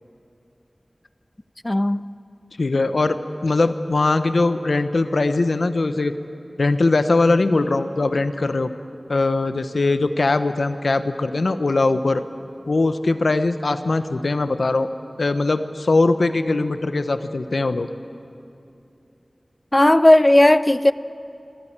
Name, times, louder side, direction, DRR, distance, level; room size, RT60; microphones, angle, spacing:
voice 1, 1.6-2.0 19.7-20.9, left 1 dB, 25° left, 0.5 m, -14 dB
voice 2, 2.6-6.1 6.6-8.7 9.1-12.2 12.7-14.9 15.2-17.9, left 3 dB, 80° left, 0.9 m, -21 dB
25.0 x 13.5 x 8.7 m
wide cardioid pair, 60°, 0 cm